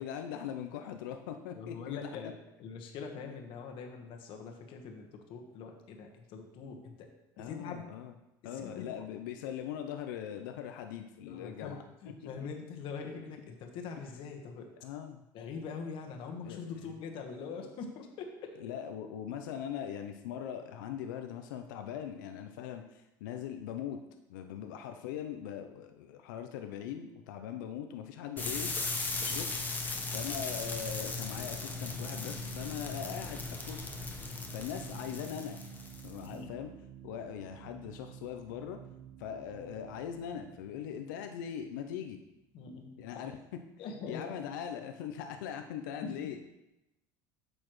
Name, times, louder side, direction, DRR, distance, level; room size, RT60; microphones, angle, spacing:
voice 1, 0.0-2.3 7.4-8.1 8.4-11.8 14.8-15.2 16.4-16.9 18.6-24.0 24.3-28.7 29.2-29.5 30.1-33.9 34.5-35.6 36.0-36.7 37.0-38.8 39.2-42.2 43.0-43.6 44.1-46.5, left 9 dB, 85° left, 6 dB, 0.6 m, -41 dB
voice 2, 1.5-7.1 7.4-7.8 8.4-8.9 11.3-14.7 15.3-18.6 29.2-29.4 36.2-36.5 42.5-43.3 43.8-44.3 46.0-46.2, left 5 dB, 60° left, 3 dB, 1.4 m, -43 dB
sound 1, 28.4-36.3, left 3 dB, 15° left, 1.1 m, -37 dB
sound 2, 29.8-42.6, right 11 dB, 70° right, 0.9 m, -52 dB
8.9 x 6.3 x 3.2 m, 0.93 s
supercardioid pair, 100°, 10 cm